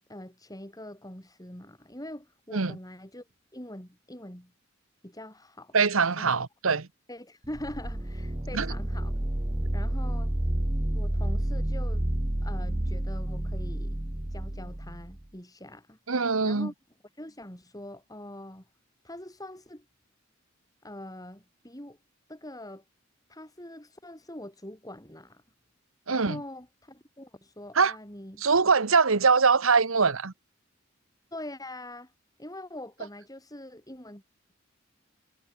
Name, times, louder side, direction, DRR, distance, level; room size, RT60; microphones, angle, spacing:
voice 1, 0.0-3.3 3.5-4.5 5.0-5.8 6.2-6.4 7.1-9.2 9.7-10.3 10.9-12.0 12.4-14.0 14.3-16.0 16.4-16.7 17.2-18.6 19.0-19.9 20.8-22.0 22.3-22.8 23.3-25.4 26.1-28.5 31.3-32.1 32.4-34.2, left 1 dB, 20° left, 7.7 m, -43 dB
voice 2, 5.7-6.9 8.5-8.7 16.1-16.7 26.1-26.4 27.8-27.9 28.4-30.3, right 5 dB, 85° right, 1.2 m, -23 dB
sound 1, 7.4-15.2, right 1 dB, 20° right, 1.0 m, -30 dB
head